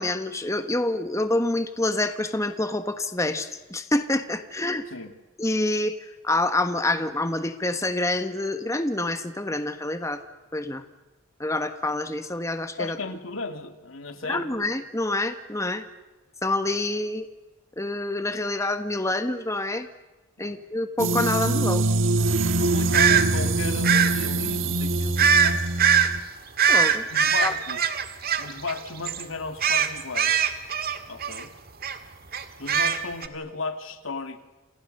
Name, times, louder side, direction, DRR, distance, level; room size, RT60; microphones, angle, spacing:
voice 1, 0.0-4.8 5.4-10.2 10.5-10.8 11.4-13.0 14.2-15.8 16.4-17.3 17.8-19.9 20.4-21.8 26.7-27.0 27.4-27.5, left 2 dB, 15° left, 8 dB, 1.3 m, -27 dB
voice 2, 12.8-14.7 20.4-20.6 22.6-25.6 27.1-27.9 28.4-30.5 31.0-31.5 32.6-34.4, left 3 dB, 75° left, 8 dB, 2.3 m, -35 dB
sound 1, 21.0-26.2, right 2 dB, 70° right, 1.4 m, -24 dB
sound 2, 22.9-23.2 23.8-24.1 25.2-25.5 25.8-26.1 26.6-28.8 29.1-29.2 29.6-31.4 31.8-32.0 32.3-33.3, right 7 dB, 45° right, 1.9 m, -21 dB
29.0 x 28.0 x 6.7 m, 1.1 s
head